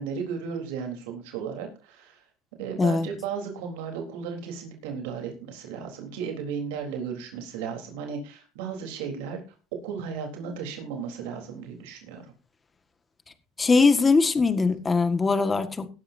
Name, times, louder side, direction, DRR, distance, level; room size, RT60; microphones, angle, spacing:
voice 1, 0.0-2.2 2.6-9.4 9.8-12.2, right 6 dB, 90° right, 3.8 m, -35 dB
voice 2, 2.8-3.1 13.6-15.9, left 4 dB, 20° left, 1.7 m, -21 dB
17.5 x 12.0 x 2.8 m
supercardioid pair, 120°, 0 cm